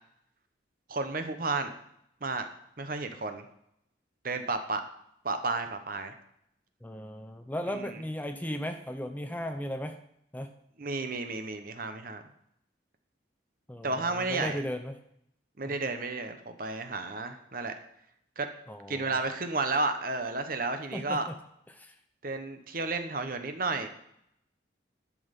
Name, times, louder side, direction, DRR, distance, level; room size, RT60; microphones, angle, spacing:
voice 1, 0.9-1.7 2.2-2.5 2.8-3.4 4.2-4.8 5.2-6.1 7.7-7.8 10.8-12.2 13.8-14.6 15.6-17.7 18.4-18.5 18.9-21.3 22.2-23.9, right 3 dB, 45° right, 7 dB, 1.0 m, -32 dB
voice 2, 6.8-10.0 10.3-10.5 13.7-15.0 15.7-15.8 18.7-19.2 20.9-21.4 21.7-22.0, equal, 10° left, 7 dB, 0.5 m, -36 dB
11.5 x 6.3 x 5.3 m, 0.74 s
head